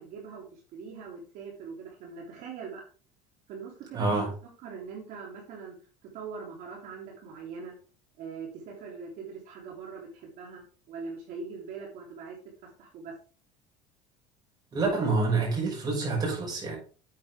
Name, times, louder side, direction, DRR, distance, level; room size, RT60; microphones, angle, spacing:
voice 1, 0.0-2.8 3.5-4.3 4.6-5.7 6.1-7.7 8.2-12.4 12.6-13.1, right 5 dB, 55° right, 3.5 m, -42 dB
voice 2, 3.9-4.3 14.7-16.8, right 3 dB, 25° right, 6.1 m, -27 dB
9.3 x 8.8 x 3.6 m
cardioid pair, 140°, 16 cm